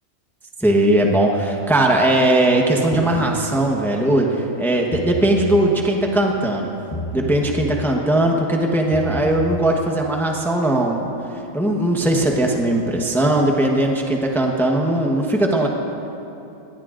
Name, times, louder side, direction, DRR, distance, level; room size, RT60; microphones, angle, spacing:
voice 1, 0.6-6.7 7.1-11.1 11.5-15.7, right 1 dB, ahead, 1 dB, 1.0 m, -19 dB
sound 1, 2.9-3.4 4.8-5.4 6.9-7.5 8.8-9.4, equal, 25° left, 1.1 m, -30 dB
21.0 x 18.0 x 2.6 m, 2.9 s
omnidirectional pair, 1.4 m